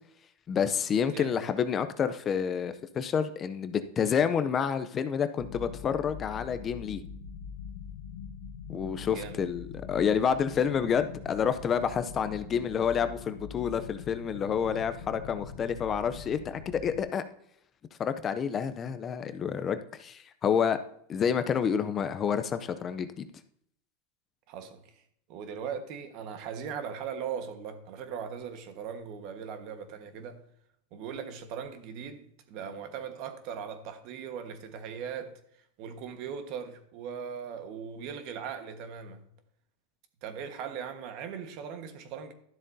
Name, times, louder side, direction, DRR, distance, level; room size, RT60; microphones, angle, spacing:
voice 1, 0.5-7.0 8.7-17.2 18.0-20.8 21.1-23.3, left 7 dB, 25° left, 0.5 m, -29 dB
sound 1, 5.4-17.0, left 7 dB, 85° left, 1.0 m, -43 dB
voice 2, 9.0-9.4 24.5-25.0 25.3-30.4 30.9-35.3 35.8-39.2 40.2-42.3, right 7 dB, 50° right, 1.3 m, -39 dB
12.0 x 7.3 x 2.7 m
supercardioid pair, 140°, 0 cm